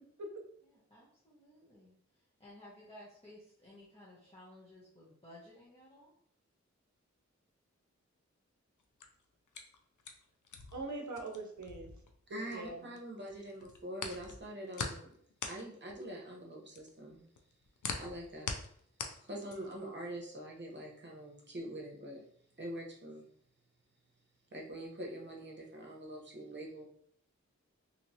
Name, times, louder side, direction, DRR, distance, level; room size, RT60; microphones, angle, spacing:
voice 1, 0.0-0.5 10.7-12.0 12.3-12.9, right 2 dB, 75° right, 2 dB, 0.7 m, -43 dB
voice 2, 0.6-6.1, left 1 dB, 20° left, -8 dB, 0.9 m, -56 dB
sound 1, 8.8-13.0 13.3-19.9, left 5 dB, 90° left, 0.4 m, -43 dB
voice 3, 12.3-15.1 15.5-17.2 18.0-18.6 19.2-22.2 22.6-23.3 24.5-26.9, right 1 dB, 40° right, -1 dB, 0.9 m, -44 dB
3.0 x 2.9 x 2.7 m, 0.66 s
wide cardioid pair, 60°, 29 cm